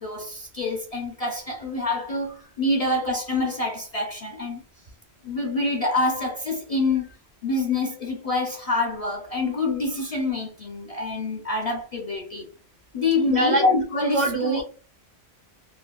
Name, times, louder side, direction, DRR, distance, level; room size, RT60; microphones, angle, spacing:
voice 1, 0.0-4.6 5.2-7.1 7.4-12.4 12.9-14.6, left 2 dB, 50° left, 0.5 m, -26 dB
voice 2, 13.3-13.7 14.1-14.6, right 2 dB, 55° right, 0.5 m, -23 dB
3.3 x 2.2 x 2.2 m
omnidirectional pair, 1.1 m